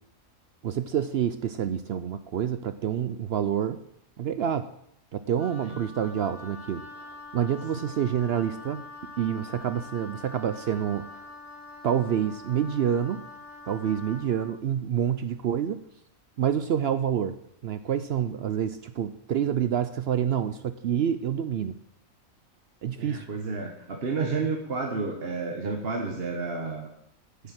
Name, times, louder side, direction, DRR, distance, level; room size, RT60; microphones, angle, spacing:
voice 1, 0.6-3.8 4.2-4.7 5.1-6.8 7.3-8.8 9.2-11.1 11.8-13.2 13.7-15.8 16.4-17.4 17.6-21.7 22.8-23.2, right 9 dB, 65° right, 12 dB, 0.7 m, -27 dB
Wind instrument woodwind instrument, 5.4-14.5, left 3 dB, 20° left, 1.9 m, -45 dB
voice 2, 23.0-26.9, right 4 dB, 45° right, 2 dB, 1.3 m, -31 dB
8.8 x 7.1 x 7.4 m, 0.74 s
omnidirectional pair, 1.4 m